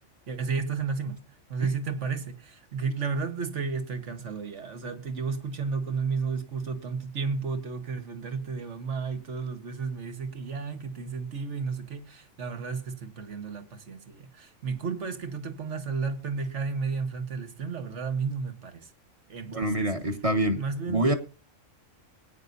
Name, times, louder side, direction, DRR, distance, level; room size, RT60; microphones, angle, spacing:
voice 1, 0.3-18.9 19.3-19.9 20.5-21.1, right 5 dB, 60° right, 1.7 m, -32 dB
voice 2, 19.5-21.1, right 1 dB, 25° right, 1.4 m, -26 dB
20.0 x 9.5 x 2.7 m
omnidirectional pair, 1.4 m